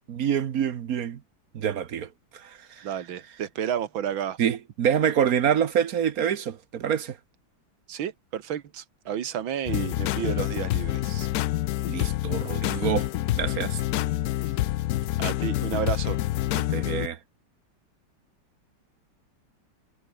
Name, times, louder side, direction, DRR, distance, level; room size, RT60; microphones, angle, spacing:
voice 1, 0.1-1.2 1.5-2.9 4.4-7.2 11.9-13.1 13.3-13.8 16.7-17.2, right 8 dB, 55° right, 1.3 m, -26 dB
voice 2, 2.8-4.4 7.9-11.3 15.2-16.2, right 9 dB, 85° right, 2.1 m, -31 dB
sound 1, 9.7-17.1, left 15 dB, 75° left, 0.8 m, -27 dB
omnidirectional pair, 2.1 m